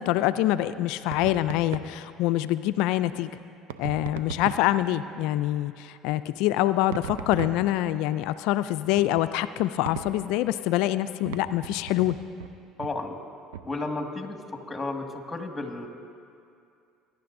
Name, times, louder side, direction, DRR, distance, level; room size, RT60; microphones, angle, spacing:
voice 1, 0.0-3.3 3.8-12.2, left 14 dB, 70° left, 13 dB, 0.3 m, -25 dB
sound 1, 1.1-2.0 3.7-4.8 6.9-8.0 8.9-9.3 9.9-10.3 11.3-12.5 12.8-13.0 13.5-13.8, right 8 dB, 80° right, 0.5 m, -37 dB
voice 2, 12.8-13.2 13.6-15.9, left 2 dB, 15° left, 4 dB, 1.7 m, -33 dB
21.5 x 11.0 x 2.6 m, 2.5 s
hypercardioid pair, 70°, 0 cm